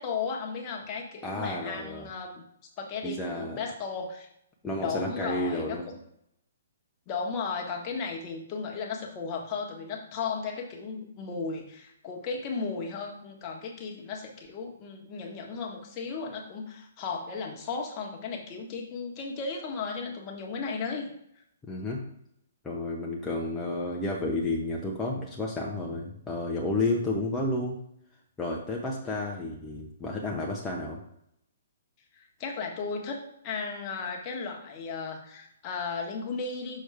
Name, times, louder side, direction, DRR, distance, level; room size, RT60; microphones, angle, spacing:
voice 1, 0.0-2.4 2.8-4.3 4.8-6.0 7.1-21.1 32.1-33.2 33.4-36.8, left 5 dB, 30° left, 0 dB, 1.5 m, -35 dB
voice 2, 1.2-2.1 3.0-3.6 4.6-5.9 21.6-22.0 22.6-27.8 28.4-31.0, left 2 dB, 10° left, -3 dB, 1.0 m, -31 dB
6.3 x 6.3 x 3.5 m, 0.73 s
hypercardioid pair, 130°, 0 cm